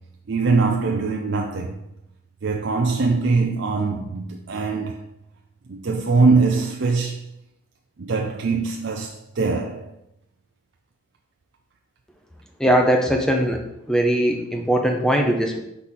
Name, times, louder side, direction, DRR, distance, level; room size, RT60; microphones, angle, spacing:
voice 1, 0.3-1.8 2.4-5.0 5.7-7.2 8.0-9.9, right 4 dB, 55° right, 0.5 m, -22 dB
voice 2, 12.6-13.6 13.9-15.6, right 1 dB, 5° left, 0.7 m, -20 dB
4.8 x 4.0 x 5.6 m
head